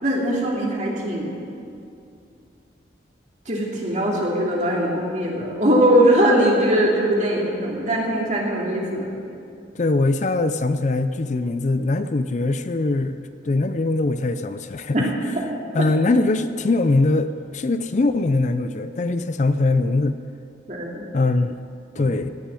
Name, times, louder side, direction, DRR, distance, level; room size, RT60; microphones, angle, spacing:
voice 1, 0.0-1.3 3.4-9.1 20.7-21.0, right 1 dB, 40° right, -3 dB, 2.9 m, -20 dB
voice 2, 9.7-13.2 13.4-15.1 15.7-20.2 21.1-21.6 22.0-22.3, left 2 dB, 40° left, 11 dB, 0.4 m, -21 dB
17.0 x 6.9 x 9.7 m, 2.5 s
head